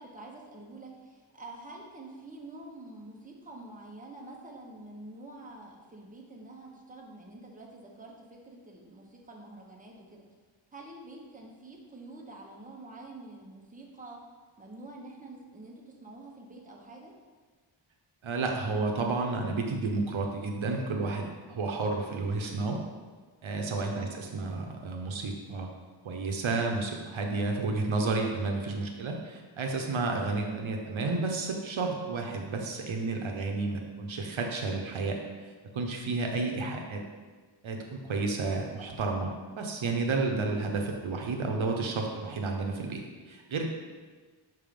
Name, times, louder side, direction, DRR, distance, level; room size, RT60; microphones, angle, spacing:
voice 1, 0.0-10.2 10.7-14.2 14.6-15.7 16.0-17.1 23.7-24.1 36.3-36.7, right 2 dB, 15° right, -2 dB, 1.0 m, -47 dB
voice 2, 18.2-22.8 23.4-25.7 26.0-35.2 35.7-37.0 37.6-43.0 43.3-43.7, right 3 dB, 75° right, 2 dB, 0.8 m, -31 dB
5.9 x 3.6 x 5.1 m, 1.4 s
wide cardioid pair, 100°, 48 cm